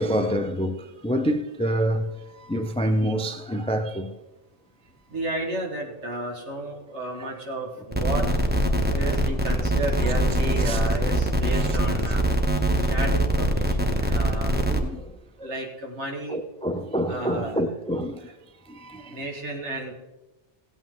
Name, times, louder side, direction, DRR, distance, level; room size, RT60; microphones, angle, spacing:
voice 1, 0.0-4.2 7.2-7.3 10.6-10.8 11.5-11.8 14.1-14.2 14.5-15.5 16.3-18.3 18.7-19.2, equal, 10° left, 0.4 m, -27 dB
voice 2, 5.1-8.5 8.9-12.2 12.8-14.5 15.4-16.4 17.1-17.6 19.1-19.9, right 1 dB, 70° right, 2.1 m, -32 dB
sound 1, 7.9-14.8, right 1 dB, 10° right, 0.8 m, -23 dB
16.0 x 8.5 x 3.8 m
omnidirectional pair, 1.2 m